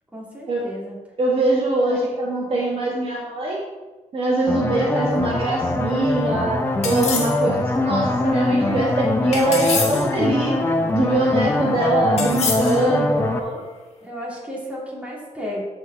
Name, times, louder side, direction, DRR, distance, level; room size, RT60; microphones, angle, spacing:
voice 1, 0.1-0.9 1.9-2.0 4.5-4.9 11.6-11.8 14.0-15.6, equal, 10° right, -5 dB, 2.5 m, -33 dB
voice 2, 1.2-3.6 4.1-10.6 10.9-13.6, right 2 dB, 50° right, -4 dB, 1.8 m, -22 dB
sound 1, 4.5-13.4, left 2 dB, 20° left, 0.7 m, -23 dB
sound 2, 6.8-7.4 9.3-10.1 12.2-12.8, left 4 dB, 60° left, 1.7 m, -26 dB
13.5 x 4.9 x 3.4 m, 1.2 s
wide cardioid pair, 155°, 13 cm